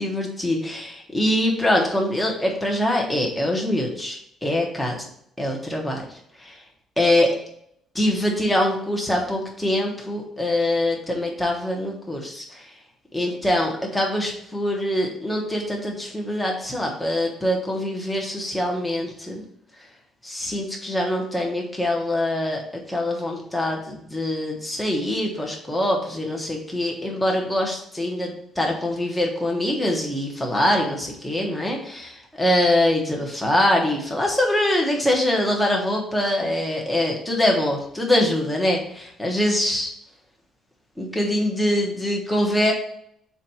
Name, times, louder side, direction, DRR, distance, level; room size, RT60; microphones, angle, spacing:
voice 1, 0.0-5.0 5.4-6.0 6.4-6.6 7.0-7.4 7.9-12.7 13.1-19.4 20.2-39.9 41.0-42.7, left 1 dB, 5° left, -1 dB, 1.1 m, -24 dB
7.3 x 2.6 x 5.5 m, 0.68 s
cardioid pair, 180°, 0 cm